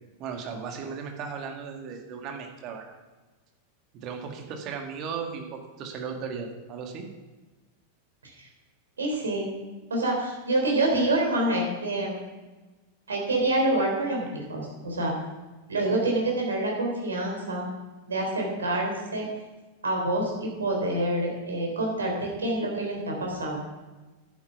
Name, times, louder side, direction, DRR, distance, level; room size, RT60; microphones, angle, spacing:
voice 1, 0.2-2.9 3.9-7.1, right 6 dB, 40° right, 3 dB, 1.9 m, -36 dB
voice 2, 9.0-9.6 9.9-12.2 13.1-15.1 15.7-17.7 18.1-19.3 19.8-23.6, right 1 dB, 70° right, 0 dB, 3.6 m, -27 dB
11.0 x 9.2 x 5.8 m, 1.2 s
figure-of-eight pair, 90°, 0 cm